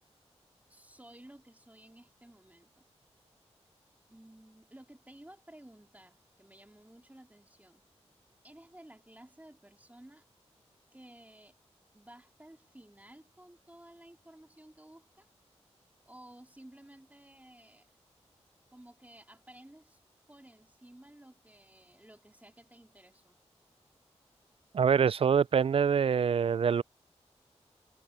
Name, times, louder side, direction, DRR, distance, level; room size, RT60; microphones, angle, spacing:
voice 1, 0.7-2.8 4.1-7.8 8.4-10.2 10.9-11.5 11.9-15.3 16.0-17.9 18.7-20.0 20.3-23.4, right 1 dB, 15° right, 3.1 m, -55 dB
voice 2, 24.7-26.8, right 7 dB, 55° right, 0.4 m, -25 dB
cardioid pair, 45°, 12 cm